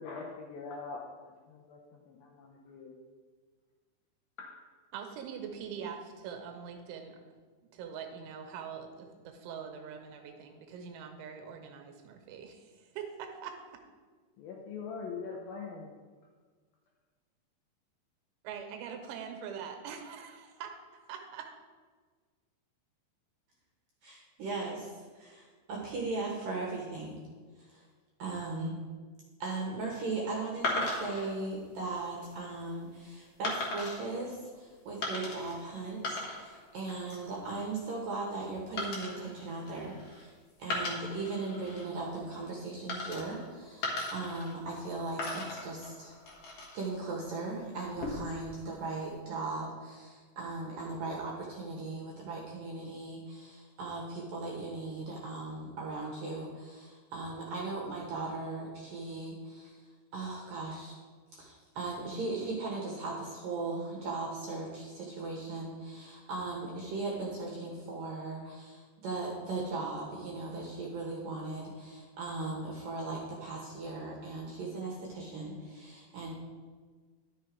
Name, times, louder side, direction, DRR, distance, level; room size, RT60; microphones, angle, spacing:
voice 1, 0.0-3.0 4.4-4.6 14.4-15.9, left 4 dB, 85° left, 0 dB, 2.0 m, -43 dB
voice 2, 4.9-7.2 7.7-13.8 18.4-21.5, right 7 dB, 85° right, 5 dB, 3.4 m, -43 dB
voice 3, 24.0-27.2 27.6-27.8 28.2-28.8 29.4-40.3 40.6-46.1 46.7-59.8 60.1-61.0 61.3-76.3, right 3 dB, 70° right, -2 dB, 2.3 m, -38 dB
sound 1, 30.6-31.3 32.0-32.3 33.4-34.0 35.0-35.6 35.9-36.6 36.9-37.3 38.8-40.2 40.6-41.9 42.9-43.5 43.8-44.9 45.2-46.9 47.8-48.4, left 2 dB, 60° left, 1.7 m, -37 dB
11.5 x 6.4 x 4.6 m, 1.5 s
omnidirectional pair, 5.3 m